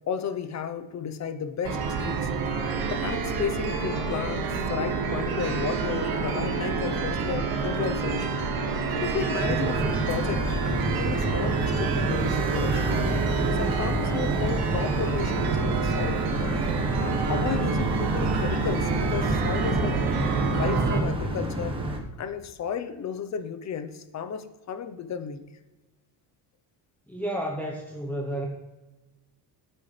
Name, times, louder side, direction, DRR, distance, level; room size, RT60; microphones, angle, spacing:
voice 1, 0.1-2.3 2.9-8.3 8.9-13.0 13.5-16.6 17.0-20.0 20.5-21.8 22.2-25.5, left 7 dB, 40° left, 11 dB, 0.9 m, -33 dB
sound 1, 1.6-21.0, right 4 dB, 55° right, 2.2 m, -28 dB
sound 2, 9.4-22.0, right 1 dB, 10° right, 1.3 m, -30 dB
voice 2, 27.1-28.5, right 1 dB, 5° left, -1 dB, 1.0 m, -31 dB
17.5 x 8.8 x 3.4 m, 1.1 s
cardioid pair, 160°, 44 cm